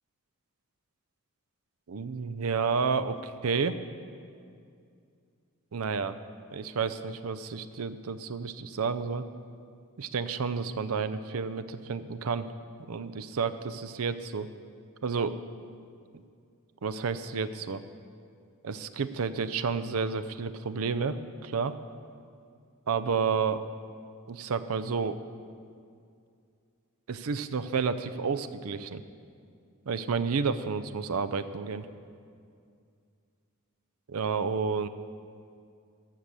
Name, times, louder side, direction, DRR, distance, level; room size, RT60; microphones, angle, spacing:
voice 1, 1.9-3.8 5.7-6.2 6.5-9.2 10.0-12.5 12.9-14.5 15.0-15.4 16.8-17.8 18.6-21.7 22.9-23.6 24.3-25.2 27.1-29.0 29.9-31.9 34.1-34.9, right 5 dB, 70° right, 12 dB, 0.5 m, -30 dB
13.5 x 6.5 x 6.8 m, 2.3 s
head